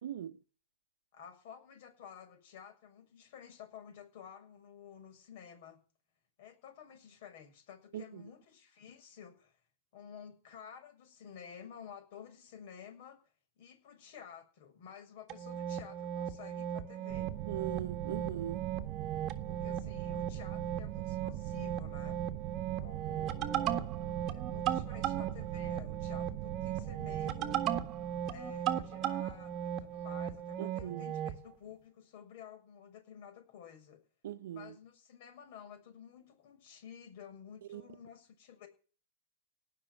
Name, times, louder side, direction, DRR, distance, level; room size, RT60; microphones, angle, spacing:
voice 1, 0.0-0.4 7.9-8.3 17.5-18.7 30.6-31.1 34.2-34.8 37.7-37.8, right 11 dB, 70° right, 1.1 m, -40 dB
voice 2, 1.1-5.8 6.4-9.6 9.9-13.2 13.6-17.3 19.4-22.2 22.8-24.0 24.3-27.7 28.3-34.0 34.5-38.7, left 8 dB, 50° left, 6.7 m, -52 dB
sound 1, 15.3-31.4, right 10 dB, 30° right, 1.6 m, -37 dB
sound 2, 17.1-30.3, right 17 dB, 45° right, 0.9 m, -42 dB
18.0 x 6.6 x 9.9 m
hypercardioid pair, 145°, 0 cm